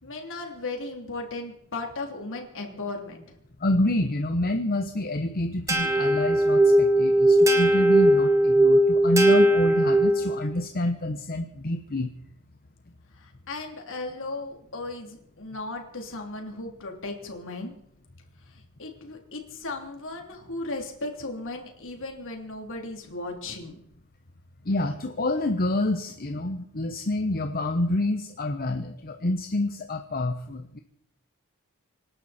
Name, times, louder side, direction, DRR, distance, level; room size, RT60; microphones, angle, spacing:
voice 1, 0.0-3.4 13.2-17.7 18.5-23.8, left 2 dB, 60° left, 2 dB, 3.3 m, -36 dB
voice 2, 3.6-12.1 24.6-30.8, left 1 dB, 40° left, 5 dB, 1.0 m, -27 dB
sound 1, 5.7-10.5, right 1 dB, 15° right, 1.8 m, -19 dB
26.0 x 11.5 x 4.4 m, 0.74 s
head